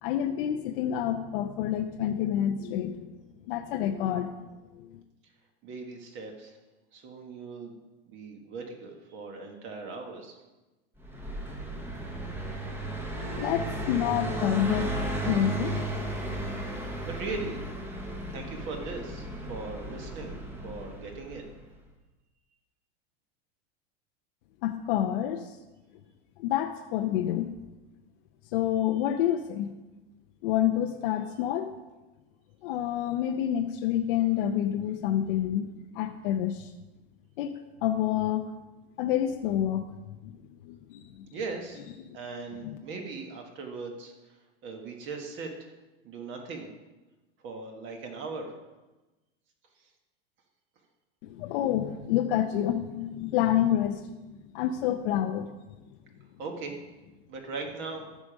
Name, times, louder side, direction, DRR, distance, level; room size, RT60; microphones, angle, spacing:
voice 1, 0.0-3.2 3.5-4.4 4.7-5.0 13.2-15.8 24.6-25.6 26.4-27.5 28.5-29.7 30.4-31.8 32.6-36.7 37.4-37.5 37.8-38.5 39.0-40.3 40.6-41.3 42.1-42.2 42.6-42.8 51.2-54.2 54.5-55.5, left 11 dB, 55° left, 4 dB, 0.7 m, -28 dB
voice 2, 5.6-6.6 6.9-7.7 8.1-10.4 16.7-17.6 18.3-20.4 20.6-21.4 41.3-41.8 42.1-44.1 44.6-45.7 46.0-46.7 47.4-48.5 56.4-56.8 57.3-58.1, right 4 dB, 35° right, 3 dB, 1.5 m, -39 dB
Car passing by, 11.0-21.6, right 2 dB, 5° right, 1.1 m, -35 dB
13.5 x 5.1 x 5.1 m, 1.1 s
supercardioid pair, 145°, 32 cm